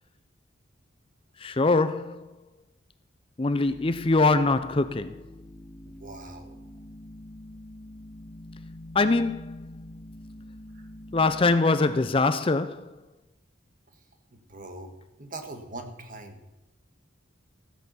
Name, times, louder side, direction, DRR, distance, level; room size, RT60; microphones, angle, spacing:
voice 1, 1.4-2.3 3.4-5.2 8.9-9.6 11.1-12.9, left 3 dB, 25° left, 0.5 m, -23 dB
sound 1, 3.6-11.6, left 1 dB, 85° left, 2.0 m, -45 dB
voice 2, 5.8-6.6 10.7-10.9 14.3-14.9 15.2-16.4, right 2 dB, 40° right, 1.7 m, -42 dB
14.0 x 10.0 x 6.9 m
head